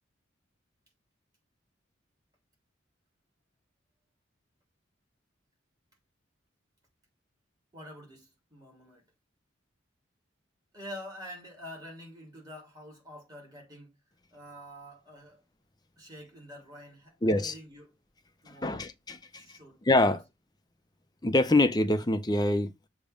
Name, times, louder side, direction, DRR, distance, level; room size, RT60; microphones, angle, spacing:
voice 1, 7.7-9.0 10.7-13.9 14.3-15.4 16.0-17.9 18.4-18.8 19.3-19.8 20.0-20.2, equal, 20° right, 2.6 m, -47 dB
voice 2, 17.2-17.5 18.5-19.4 19.9-20.2 21.2-22.9, left 2 dB, 20° left, 0.6 m, -25 dB
6.8 x 3.0 x 5.0 m
head